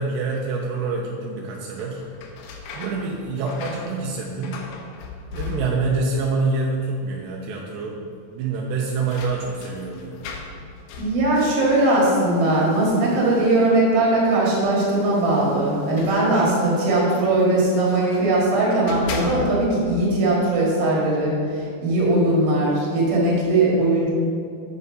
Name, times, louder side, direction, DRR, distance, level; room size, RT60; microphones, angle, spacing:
voice 1, 0.0-2.0 2.7-4.6 5.3-8.1 8.3-10.2, right 3 dB, 85° right, -1 dB, 2.8 m, -26 dB
sound 1, 1.7-6.1 6.4-7.0 7.3-7.4 8.5-13.9 14.8-18.3 18.7-19.9, left 4 dB, 80° left, 2.0 m, -38 dB
voice 2, 11.0-24.1, right 2 dB, 55° right, -4 dB, 3.2 m, -20 dB
6.8 x 6.8 x 5.1 m, 2.5 s
omnidirectional pair, 5.0 m